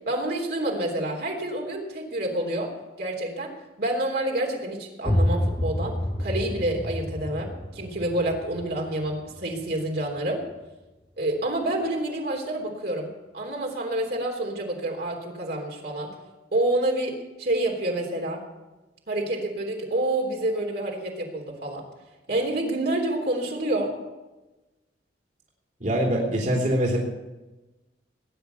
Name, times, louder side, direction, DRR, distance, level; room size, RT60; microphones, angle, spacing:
voice 1, 0.1-2.7 3.0-3.5 3.8-10.4 11.2-16.1 16.5-18.4 19.1-21.8 22.3-23.9, right 1 dB, 65° right, 0 dB, 3.3 m, -28 dB
sound 1, 5.0-10.6, left 1 dB, 20° left, 0.9 m, -29 dB
voice 2, 25.8-27.0, right 1 dB, 45° right, -1 dB, 3.1 m, -23 dB
19.0 x 10.0 x 7.0 m, 1.1 s
head